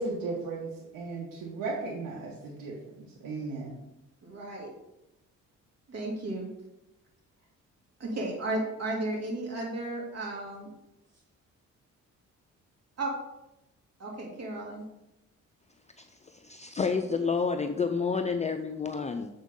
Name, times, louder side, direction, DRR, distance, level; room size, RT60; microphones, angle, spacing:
voice 1, 0.0-2.7 3.2-3.7, right 3 dB, 85° right, -2 dB, 1.3 m, -35 dB
voice 2, 4.2-4.7 5.9-6.5 8.0-10.7 13.0-13.1 14.0-14.8, right 2 dB, 55° right, -2 dB, 2.5 m, -34 dB
voice 3, 16.2-19.3, left 5 dB, 25° left, 5 dB, 0.4 m, -29 dB
7.2 x 5.3 x 3.7 m, 0.90 s
cardioid pair, 90°, 30 cm